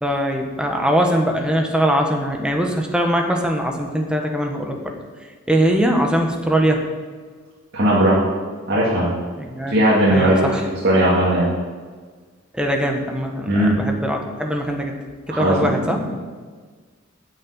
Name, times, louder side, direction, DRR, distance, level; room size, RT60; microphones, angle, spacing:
voice 1, 0.0-4.9 5.5-6.9 9.4-9.8 10.1-10.6 12.5-16.0, equal, 5° right, 2 dB, 1.2 m, -21 dB
voice 2, 7.7-8.2 8.7-9.1 9.7-10.5 10.8-11.5 13.5-13.8 15.3-15.7, right 1 dB, 55° right, -7 dB, 2.4 m, -17 dB
9.6 x 6.6 x 8.7 m, 1.5 s
head